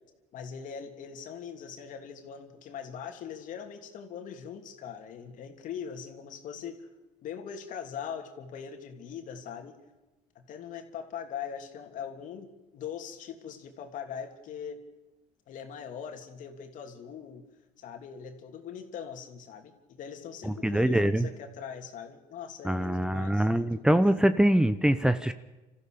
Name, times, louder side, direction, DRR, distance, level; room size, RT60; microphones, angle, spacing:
voice 1, 0.3-6.9 7.2-9.8 10.3-14.8 15.5-17.4 17.8-24.0, left 7 dB, 60° left, 5 dB, 3.1 m, -41 dB
voice 2, 20.4-21.3 22.6-25.3, right 1 dB, 5° right, 12 dB, 0.9 m, -24 dB
26.5 x 14.5 x 6.8 m, 1.1 s
cardioid pair, 100°, 15 cm